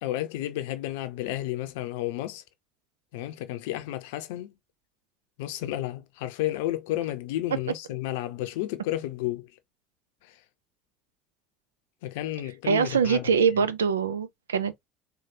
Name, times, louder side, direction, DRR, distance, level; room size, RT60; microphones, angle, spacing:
voice 1, 0.0-2.4 3.1-4.5 5.4-9.5 10.2-10.4 12.0-13.3, left 14 dB, 70° left, 0.6 m, -32 dB
voice 2, 12.6-14.9, right 6 dB, 85° right, 0.4 m, -24 dB
4.6 x 2.3 x 2.8 m
hypercardioid pair, 65°, 0 cm